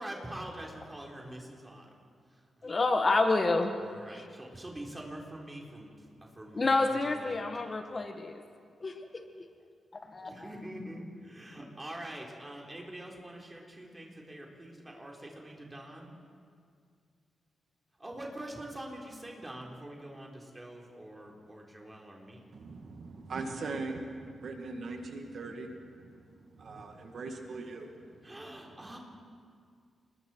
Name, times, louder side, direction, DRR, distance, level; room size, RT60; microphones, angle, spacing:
voice 1, 0.0-1.9 2.6-2.7 3.8-6.1 6.4-7.7 10.2-16.1 18.0-22.5 28.2-29.0, right 1 dB, 15° right, -1 dB, 4.1 m, -45 dB
voice 2, 2.6-3.7 4.1-4.3 6.5-8.4 8.8-8.9 10.1-10.5, left 3 dB, 35° left, 6 dB, 1.4 m, -28 dB
voice 3, 22.5-28.7, right 3 dB, 60° right, 4 dB, 1.9 m, -41 dB
28.5 x 20.5 x 4.6 m, 2.2 s
cardioid pair, 100°, 0 cm